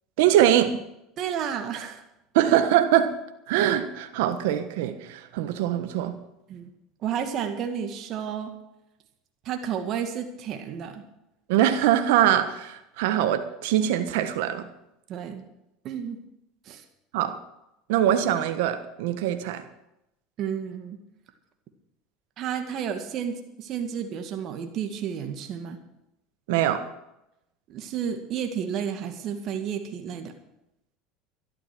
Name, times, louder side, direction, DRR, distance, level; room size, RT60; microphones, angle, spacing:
voice 1, 0.2-0.7 2.3-3.1 3.5-6.2 11.5-14.7 17.1-17.4 17.9-19.6 26.5-26.8, right 11 dB, 75° right, 9 dB, 1.3 m, -23 dB
voice 2, 1.2-2.0 2.4-2.5 6.5-6.7 7.0-8.5 9.4-11.0 15.1-15.4 15.8-16.2 16.7-16.8 20.4-21.0 22.4-25.8 27.7-30.3, right 8 dB, 50° right, 6 dB, 2.1 m, -31 dB
12.5 x 12.5 x 6.2 m, 0.86 s
hypercardioid pair, 95°, 0 cm